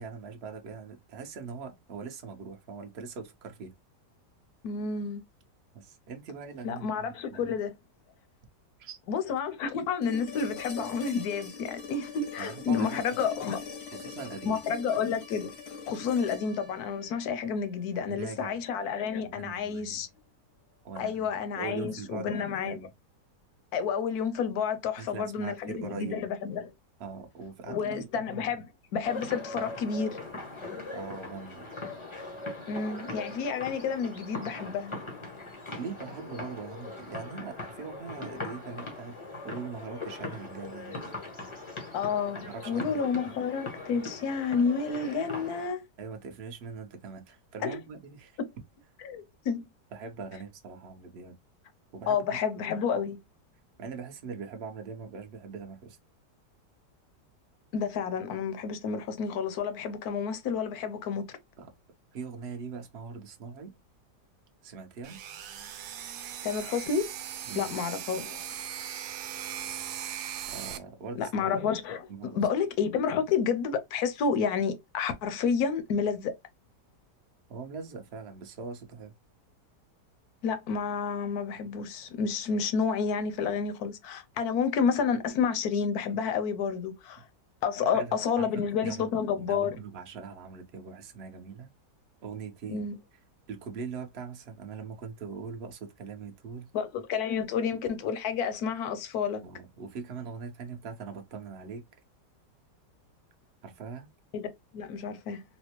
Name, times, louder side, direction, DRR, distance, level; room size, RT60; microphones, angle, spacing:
voice 1, 0.0-3.7 5.7-7.5 8.8-9.0 12.4-13.0 13.4-13.5 13.9-14.6 15.9-16.0 17.9-18.6 19.2-20.0 20.8-21.3 21.5-22.9 25.0-26.3 27.0-28.6 30.9-31.7 35.8-39.2 39.4-41.0 42.4-43.3 46.0-48.4 49.9-51.3 51.9-52.2 53.8-56.0 61.6-61.7 62.1-63.7 64.6-65.2 67.4-67.7 70.5-71.3 72.1-72.4 77.5-79.1 87.8-91.7 92.2-92.9 93.5-96.7 99.4-101.8 103.6-104.1, right 5 dB, 50° right, 0.8 m, -41 dB
voice 2, 4.6-5.2 6.6-7.7 9.1-13.6 14.5-15.5 15.9-20.1 21.0-22.8 23.7-26.7 27.7-30.2 32.7-35.0 41.9-45.8 47.6-47.8 49.0-49.7 52.1-53.2 57.7-61.4 66.4-67.1 67.5-68.5 71.1-76.3 80.4-87.2 87.6-89.8 92.7-93.0 96.7-99.4 104.3-104.5 104.7-105.4, left 6 dB, 70° left, 1.1 m, -30 dB
sound 1, 10.0-18.1 20.2-20.3, left 6 dB, 85° left, 1.7 m, -43 dB
sound 2, 29.0-45.7, left 3 dB, 30° left, 0.6 m, -40 dB
sound 3, 65.0-70.8, right 10 dB, 70° right, 1.1 m, -39 dB
4.2 x 2.1 x 2.9 m
omnidirectional pair, 1.9 m